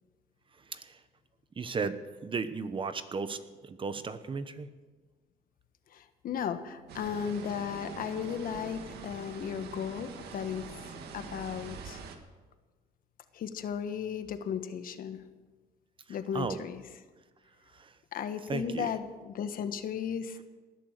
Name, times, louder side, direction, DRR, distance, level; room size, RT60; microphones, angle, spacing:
voice 1, 0.5-1.0 1.6-4.7 16.3-16.6 17.7-18.0 18.5-18.9, right 5 dB, 30° right, 12 dB, 1.0 m, -35 dB
voice 2, 5.9-10.6 11.1-12.0 13.3-15.2 16.1-16.8 18.1-20.4, left 8 dB, 60° left, 9 dB, 1.4 m, -35 dB
sound 1, 6.9-12.2, right 5 dB, 75° right, 2.0 m, -44 dB
19.5 x 11.0 x 6.7 m, 1.3 s
cardioid pair, 110°, 17 cm